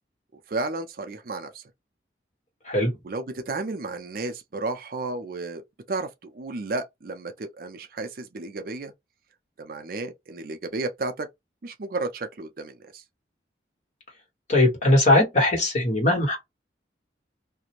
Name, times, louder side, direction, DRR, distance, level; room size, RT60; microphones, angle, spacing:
voice 1, 0.5-1.6 3.0-5.6 5.9-8.9 9.6-11.3 11.6-13.0, right 3 dB, 50° right, 0.5 m, -33 dB
voice 2, 14.5-16.4, left 1 dB, 40° left, 1.3 m, -20 dB
2.5 x 2.1 x 3.0 m
head